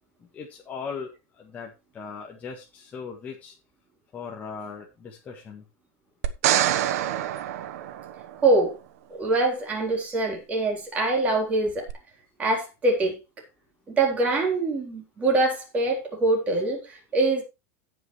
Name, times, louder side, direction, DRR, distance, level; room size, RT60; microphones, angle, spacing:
voice 1, 0.3-1.1 1.4-3.5 4.1-5.6, left 5 dB, 20° left, 1.6 m, -38 dB
sound 1, 6.2-8.5 11.9-12.0, right 11 dB, 90° right, 1.2 m, -26 dB
voice 2, 8.4-8.8 9.1-11.9 12.4-13.2 14.0-17.4, right 2 dB, 20° right, 3.9 m, -24 dB
17.0 x 6.1 x 3.2 m
supercardioid pair, 170°, 8 cm